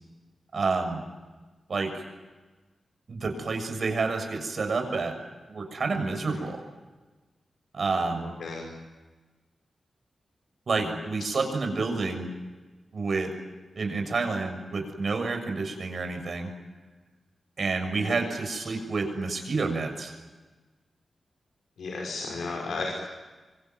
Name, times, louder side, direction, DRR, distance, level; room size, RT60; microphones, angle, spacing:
voice 1, 0.5-1.0 1.7-2.0 3.1-5.1 5.5-6.6 7.7-8.3 10.7-12.2 12.9-13.3 13.8-16.5 17.6-20.1, right 3 dB, 55° right, 6 dB, 6.8 m, -29 dB
voice 2, 21.8-22.9, left 3 dB, 85° left, -1 dB, 5.7 m, -33 dB
25.5 x 25.0 x 9.3 m, 1.3 s
wide cardioid pair, 110°, 0 cm